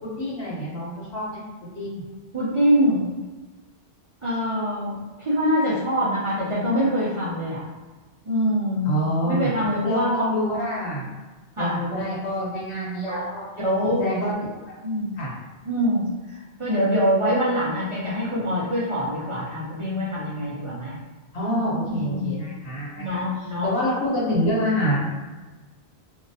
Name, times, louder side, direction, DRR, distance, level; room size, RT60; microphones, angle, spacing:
voice 1, 0.0-1.4 1.7-2.0 8.8-9.5 9.8-11.1 11.6-13.4 13.8-14.3 15.2-15.3 21.3-23.2 23.6-25.0, equal, 85° left, -6 dB, 1.2 m, -26 dB
voice 2, 2.3-3.2 4.2-7.6 8.3-8.9 9.3-10.3 11.6-11.8 13.0-13.2 13.6-14.0 14.8-15.1 15.7-21.0 21.9-22.3 23.0-23.7, equal, 45° right, -8 dB, 0.4 m, -24 dB
2.7 x 2.0 x 2.6 m, 1.2 s
omnidirectional pair, 1.1 m